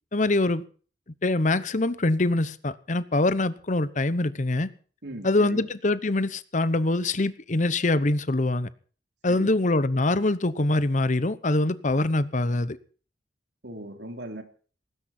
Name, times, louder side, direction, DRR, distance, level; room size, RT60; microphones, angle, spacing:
voice 1, 0.1-0.6 1.2-4.7 5.2-8.7 9.2-12.8, left 2 dB, 45° left, 0.9 m, -24 dB
voice 2, 5.0-5.7 9.3-9.5 13.6-14.4, right 1 dB, 70° right, 3.4 m, -38 dB
19.0 x 16.5 x 4.4 m
head